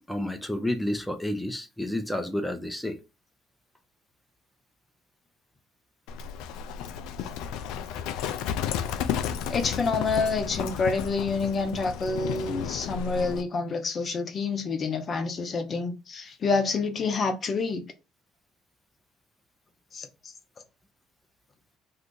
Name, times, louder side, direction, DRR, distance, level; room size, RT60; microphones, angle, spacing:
voice 1, 0.0-3.0, left 1 dB, 5° left, 0.6 m, -30 dB
Livestock farm animals working animals, 6.1-13.4, left 8 dB, 70° left, 0.3 m, -32 dB
voice 2, 9.5-17.8 19.9-20.1, left 4 dB, 45° left, 0.7 m, -28 dB
2.7 x 2.4 x 3.6 m
hypercardioid pair, 60°, 0 cm